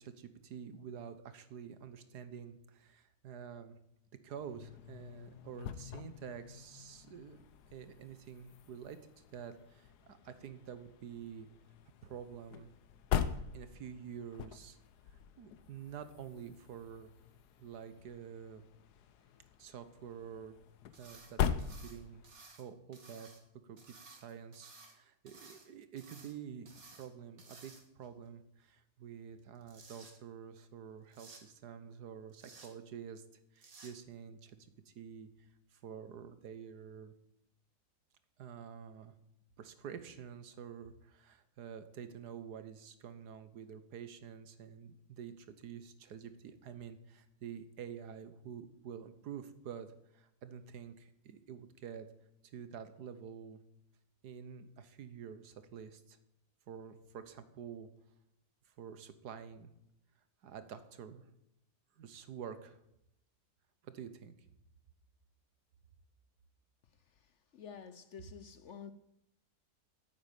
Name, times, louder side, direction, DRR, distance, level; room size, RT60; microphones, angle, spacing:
voice 1, 0.0-3.8 4.2-7.4 7.7-11.5 12.0-12.7 13.5-14.8 15.4-17.1 17.6-18.6 19.6-20.6 21.0-22.2 22.6-23.3 23.6-33.2 33.5-37.1 38.4-39.1 39.6-49.9 50.1-52.1 52.5-53.6 54.2-56.2 56.7-57.9 58.8-59.7 60.4-61.2 62.0-62.8 63.8-64.3, right 7 dB, 70° right, 1.7 m, -48 dB
sound 1, 4.4-22.4, left 8 dB, 75° left, 1.3 m, -42 dB
sound 2, 20.9-21.3 21.6-22.6 22.9-23.4 23.8-24.9 25.3-25.7 26.0-26.3 26.7-27.1 27.4-28.1 29.4-30.1 31.1-31.4 32.3-32.7 33.6-33.9, right 3 dB, 55° right, 2.4 m, -56 dB
voice 2, 67.5-68.9, left 7 dB, 60° left, 0.8 m, -49 dB
9.7 x 8.9 x 9.1 m
omnidirectional pair, 1.8 m